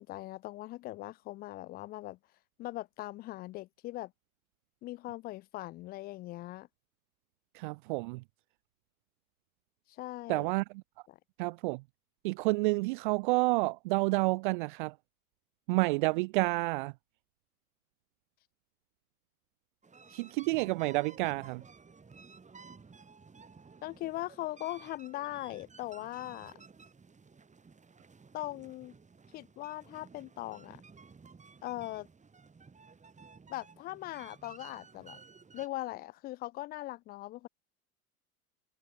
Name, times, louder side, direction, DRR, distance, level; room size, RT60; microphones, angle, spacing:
voice 1, 0.0-2.2 2.6-4.1 4.8-6.7 9.9-10.5 11.1-11.2 23.8-26.6 28.3-28.9 29.3-30.8 31.6-32.1 33.5-35.2 35.5-37.5, left 17 dB, 20° left, 0.4 m, -40 dB
voice 2, 7.5-8.2 10.3-10.6 11.4-11.8 12.2-14.9 15.7-16.9 20.1-21.6, right 25 dB, 35° right, 0.4 m, -29 dB
sound 1, 19.8-35.7, right 5 dB, 15° right, 7.2 m, -55 dB
figure-of-eight pair, 80°, 44 cm